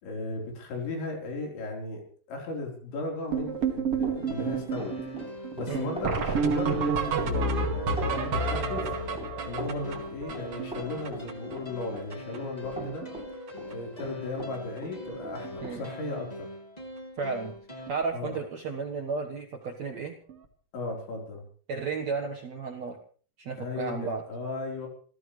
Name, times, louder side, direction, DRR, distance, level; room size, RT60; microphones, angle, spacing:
voice 1, 0.0-2.0 2.3-4.9 5.5-8.9 9.4-13.1 13.7-16.5 18.1-18.4 20.7-21.4 23.6-24.9, left 3 dB, 70° left, 1 dB, 6.5 m, -36 dB
sound 1, 3.3-11.5 11.8-11.9 12.1-12.4 12.6-13.2 13.5-13.7 14.5-14.6 15.1-15.2 15.4-15.6 17.9-18.0 20.3-20.4, right 4 dB, 45° right, 2.2 m, -30 dB
Run, 3.4-14.6 14.8-15.8, right 1 dB, ahead, 7.4 m, -41 dB
sound 2, 4.1-17.9, left 1 dB, 85° left, 0.3 m, -42 dB
voice 2, 17.2-17.5 17.9-20.1 21.7-23.0 23.4-24.2, right 5 dB, 85° right, 1 dB, 1.5 m, -33 dB
28.0 x 15.5 x 3.3 m, 0.43 s
omnidirectional pair, 5.5 m